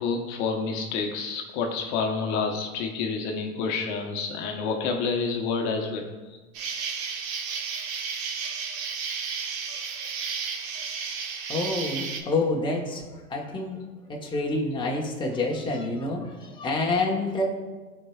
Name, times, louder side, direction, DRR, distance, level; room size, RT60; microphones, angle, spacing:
voice 1, 0.0-6.4, left 4 dB, 50° left, 3 dB, 0.9 m, -29 dB
Insect, 6.5-12.2, right 6 dB, 50° right, 1.1 m, -32 dB
voice 2, 11.5-13.0 13.3-13.8 14.1-17.5, left 2 dB, 10° left, -1 dB, 1.0 m, -27 dB
12.5 x 4.5 x 2.3 m, 1.3 s
hypercardioid pair, 115°, 45 cm